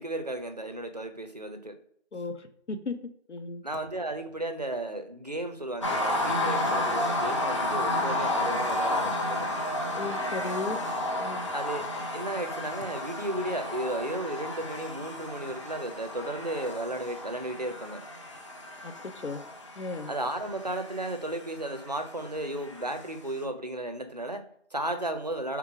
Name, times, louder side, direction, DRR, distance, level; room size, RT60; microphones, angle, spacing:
voice 1, 0.0-1.8 3.6-9.5 11.5-11.8 12.1-18.0 20.1-25.6, right 1 dB, 40° right, 6 dB, 0.5 m, -34 dB
voice 2, 2.1-2.9 3.3-3.6 9.9-10.8 11.2-11.5 18.8-18.9 19.2-19.4 19.7-20.1, left 3 dB, 80° left, 8 dB, 1.0 m, -35 dB
sound 1, 5.8-23.1, left 1 dB, 25° left, 0.7 m, -32 dB
3.6 x 3.0 x 4.8 m, 0.67 s
figure-of-eight pair, 170°, 34 cm